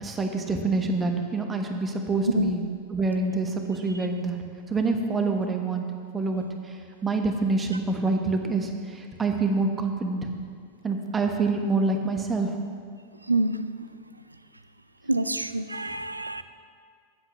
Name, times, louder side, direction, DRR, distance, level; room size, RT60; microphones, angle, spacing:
voice 1, 0.0-2.6 2.9-4.4 4.7-5.8 6.1-6.5 7.0-10.3 10.8-12.5, right 3 dB, 15° right, 4 dB, 1.3 m, -26 dB
voice 2, 13.3-13.6 15.1-16.4, right 2 dB, 85° right, 12 dB, 0.5 m, -26 dB
9.7 x 8.0 x 7.0 m, 2.1 s
figure-of-eight pair, 90°, 0 cm